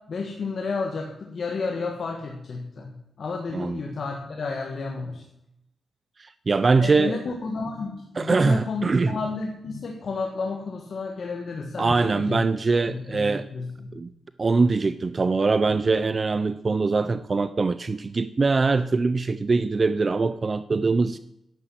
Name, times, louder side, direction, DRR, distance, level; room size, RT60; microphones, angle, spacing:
voice 1, 0.1-5.2 6.8-12.4 12.7-14.0, left 4 dB, 50° left, 1 dB, 1.7 m, -31 dB
voice 2, 6.2-7.2 8.2-9.2 11.8-13.5 13.9-14.1 14.4-21.2, right 4 dB, 30° right, 13 dB, 0.4 m, -23 dB
11.0 x 10.5 x 7.7 m, 0.85 s
wide cardioid pair, 180°, 0 cm